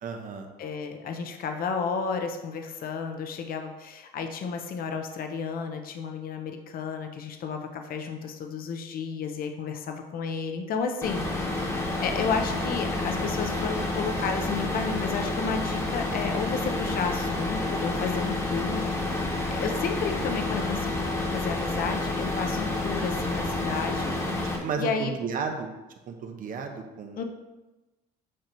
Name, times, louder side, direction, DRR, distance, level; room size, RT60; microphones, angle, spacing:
voice 1, 0.0-0.5 24.4-25.7 26.1-27.2, right 5 dB, 55° right, 4 dB, 1.0 m, -33 dB
voice 2, 0.6-20.9 21.3-24.1 24.8-25.1 27.2-27.3, left 5 dB, 60° left, 5 dB, 0.9 m, -32 dB
sound 1, 11.0-24.6, left 2 dB, 15° left, 1.4 m, -29 dB
8.7 x 2.9 x 5.2 m, 1.1 s
cardioid pair, 110°, 17 cm